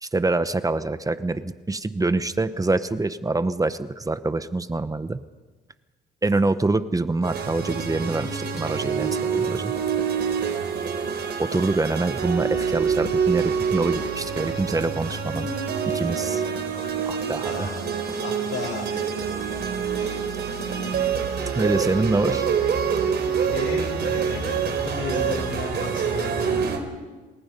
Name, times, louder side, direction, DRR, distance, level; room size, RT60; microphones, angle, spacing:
voice 1, 0.0-5.2 6.2-9.7 11.4-15.5 15.9-16.4 17.1-17.7 21.5-22.5, right 2 dB, 15° right, 12 dB, 1.1 m, -25 dB
sound 1, 7.2-26.8, right 6 dB, 60° right, 4.0 m, -26 dB
voice 2, 17.1-19.1 19.9-20.2 20.6-21.1 21.5-21.7 23.4-26.7, left 4 dB, 70° left, 2 dB, 7.6 m, -35 dB
28.5 x 19.5 x 5.4 m, 1.3 s
cardioid pair, 90°, 20 cm